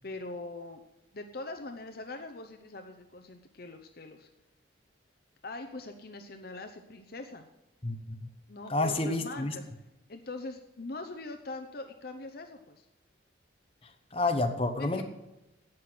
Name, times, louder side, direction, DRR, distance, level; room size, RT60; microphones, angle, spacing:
voice 1, 0.0-0.8 1.1-4.3 5.4-7.5 8.5-9.7 10.1-12.9 14.8-15.0, left 2 dB, 50° left, 6 dB, 0.8 m, -42 dB
voice 2, 7.8-8.3 8.7-9.5 14.1-15.0, left 2 dB, 30° left, 5 dB, 1.0 m, -29 dB
16.5 x 6.0 x 7.8 m, 0.96 s
head